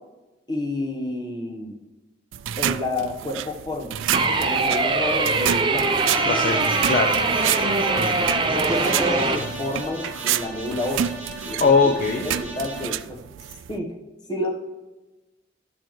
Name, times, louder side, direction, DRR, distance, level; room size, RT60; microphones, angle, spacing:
voice 1, 0.5-1.8 2.6-4.0 4.3-5.9 7.5-11.2 11.4-11.8 12.2-13.2 13.7-14.0 14.3-14.5, left 1 dB, 20° left, 1 dB, 1.0 m, -30 dB
sound 1, 2.3-13.8, right 10 dB, 80° right, 0.3 m, -30 dB
sound 2, 4.1-9.4, right 3 dB, 25° right, 0.6 m, -22 dB
sound 3, 6.0-12.9, right 1 dB, 10° right, 1.8 m, -36 dB
voice 2, 6.3-7.2 11.6-12.2, left 4 dB, 45° left, 3 dB, 0.5 m, -20 dB
12.0 x 6.8 x 3.1 m, 1.1 s
head